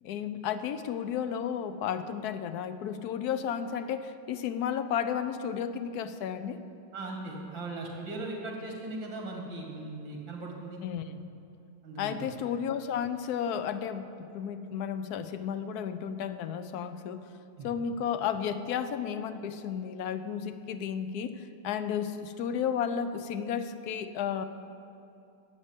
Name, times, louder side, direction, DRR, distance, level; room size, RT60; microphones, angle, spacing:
voice 1, 0.0-6.6 10.8-11.2 12.0-17.3 17.6-24.4, left 8 dB, 65° left, 10 dB, 1.1 m, -33 dB
voice 2, 6.9-10.8 11.8-12.3 17.6-17.7, right 2 dB, 85° right, -1 dB, 3.0 m, -38 dB
12.0 x 8.0 x 8.8 m, 2.7 s
omnidirectional pair, 2.0 m